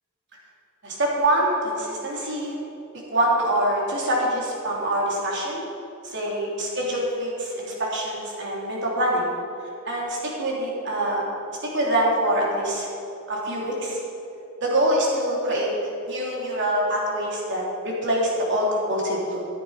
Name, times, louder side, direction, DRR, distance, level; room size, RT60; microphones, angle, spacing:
voice 1, 0.8-2.5 3.1-5.6 6.0-9.3 9.8-11.2 11.7-12.9 13.3-14.0 14.6-15.7 16.1-19.4, right 1 dB, 60° right, -3 dB, 3.2 m, -25 dB
13.5 x 10.5 x 5.0 m, 3.0 s
head